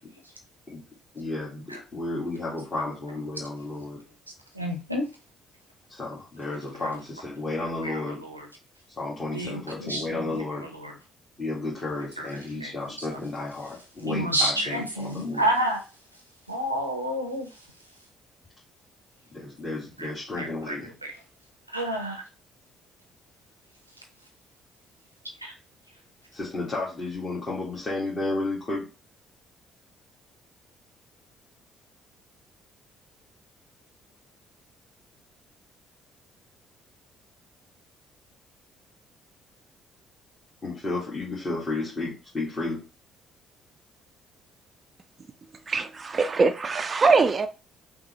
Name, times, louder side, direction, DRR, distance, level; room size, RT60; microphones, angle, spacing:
voice 1, 1.1-4.0 5.9-8.2 9.0-10.7 11.4-15.5 19.3-20.9 26.3-28.9 40.6-42.8, left 2 dB, 30° left, 1.7 m, -32 dB
voice 2, 4.5-5.0 7.8-8.5 9.3-10.3 10.8-10.9 12.2-12.3 12.6-12.7 14.0-15.8 16.5-17.5 20.0-20.1 20.4-20.8 21.0-21.1 21.7-22.2 25.4-25.5, right 1 dB, 90° right, 0.7 m, -29 dB
voice 3, 45.7-47.5, right 4 dB, 35° right, 0.4 m, -22 dB
5.8 x 2.3 x 3.0 m
figure-of-eight pair, 45°, 0 cm